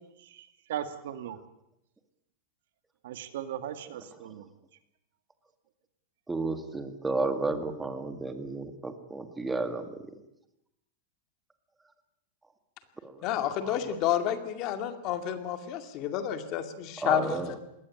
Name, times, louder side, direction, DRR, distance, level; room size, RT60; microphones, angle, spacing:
voice 1, 0.2-1.4 3.0-4.4, right 10 dB, 70° right, 9 dB, 2.2 m, -38 dB
voice 2, 6.3-10.0 13.0-13.3 13.6-14.0 17.0-17.6, right 3 dB, 10° right, 8 dB, 2.0 m, -32 dB
voice 3, 13.2-17.6, left 10 dB, 40° left, 8 dB, 2.3 m, -30 dB
21.0 x 17.5 x 9.8 m, 0.84 s
supercardioid pair, 160°, 0 cm